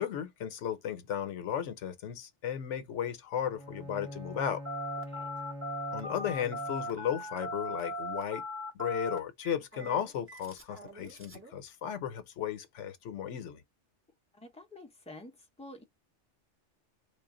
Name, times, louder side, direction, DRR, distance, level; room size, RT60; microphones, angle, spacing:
voice 1, 0.0-4.6 5.9-8.4 8.7-13.6, left 9 dB, 80° left, 1.0 m, -35 dB
Bowed string instrument, 3.5-7.2, equal, 40° right, 1.9 m, -44 dB
Telephone, 4.6-11.5, equal, 10° right, 1.3 m, -39 dB
voice 2, 14.3-15.8, left 1 dB, 5° left, 0.6 m, -49 dB
3.3 x 2.5 x 3.6 m
omnidirectional pair, 1.2 m